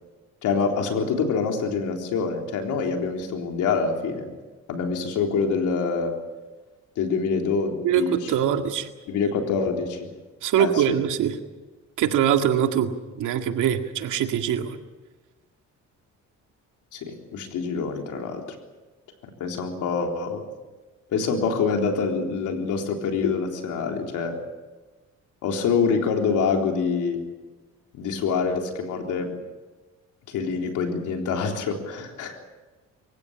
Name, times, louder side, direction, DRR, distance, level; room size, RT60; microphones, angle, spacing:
voice 1, 0.4-4.3 4.7-6.1 7.0-8.3 9.1-10.1 10.6-11.0 16.9-18.4 19.4-20.4 21.1-24.4 25.4-27.2 27.9-29.3 30.3-32.4, left 5 dB, 85° left, 2 dB, 3.8 m, -26 dB
voice 2, 7.8-8.9 10.4-11.4 12.0-12.9 13.2-14.8, right 9 dB, 85° right, 5 dB, 2.0 m, -23 dB
24.5 x 15.5 x 8.9 m, 1.2 s
cardioid pair, 90°, 30 cm